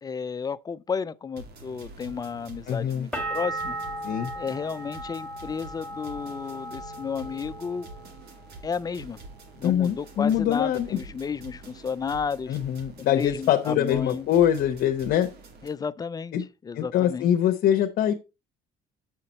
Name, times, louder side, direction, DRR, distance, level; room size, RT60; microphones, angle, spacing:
voice 1, 0.0-3.8 4.3-7.9 8.6-9.2 9.6-12.6 13.0-14.3 15.6-16.3 16.6-17.3, left 6 dB, 25° left, 0.4 m, -32 dB
sound 1, 1.4-15.7, right 3 dB, 70° right, 2.1 m, -46 dB
voice 2, 2.7-3.1 4.0-4.3 9.6-11.0 12.5-15.3 16.3-16.4 16.8-18.1, left 10 dB, 70° left, 0.8 m, -23 dB
sound 2, 3.1-8.8 9.1-9.8, right 1 dB, 5° left, 1.9 m, -37 dB
7.6 x 5.7 x 4.1 m
cardioid pair, 110°, 17 cm